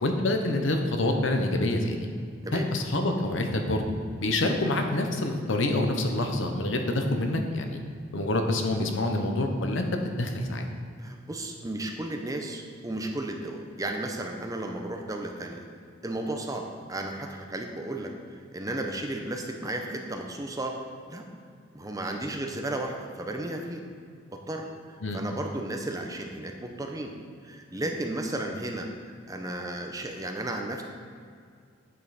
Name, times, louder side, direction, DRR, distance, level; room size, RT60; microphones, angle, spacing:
voice 1, 0.0-2.1 2.5-3.9 4.2-7.8 8.1-10.6 25.0-25.2, left 2 dB, 70° left, 4 dB, 0.9 m, -27 dB
voice 2, 11.0-15.7 16.0-18.1 18.5-20.8 21.1-21.3 21.7-23.8 24.3-24.7 25.1-27.1 27.4-28.9 29.3-30.8, right 1 dB, 20° right, 3 dB, 0.7 m, -34 dB
9.3 x 5.4 x 4.2 m, 2.2 s
head